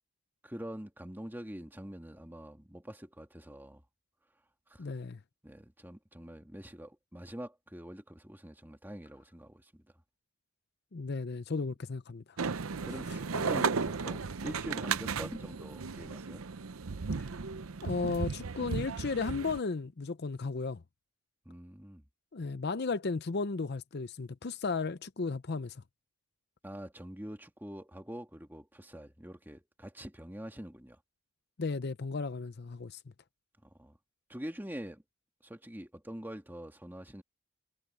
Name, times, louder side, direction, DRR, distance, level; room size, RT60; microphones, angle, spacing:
voice 1, 0.4-3.8 4.7-4.8 5.4-9.8 12.8-16.4 21.5-22.0 26.6-31.0 33.6-34.0 34.3-35.0 35.4-37.2, equal, 10° right, 2.0 m, -45 dB
voice 2, 4.8-5.2 10.9-12.2 17.2-17.3 17.8-20.8 22.3-25.8 31.6-33.0, left 4 dB, 50° left, 0.6 m, -34 dB
sound 1, 12.4-19.6, right 5 dB, 80° right, 0.7 m, -35 dB
head